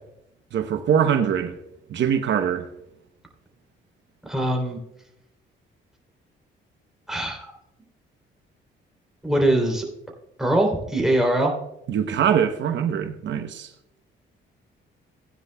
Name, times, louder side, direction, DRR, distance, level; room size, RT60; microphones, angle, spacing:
voice 1, 0.5-1.5 1.9-2.7 11.9-13.7, right 8 dB, 65° right, 0.8 m, -23 dB
voice 2, 4.2-4.8 7.1-7.5 9.2-9.9 10.4-11.5, right 1 dB, ahead, 3.0 m, -22 dB
16.5 x 9.5 x 2.2 m
cardioid pair, 90°, 20 cm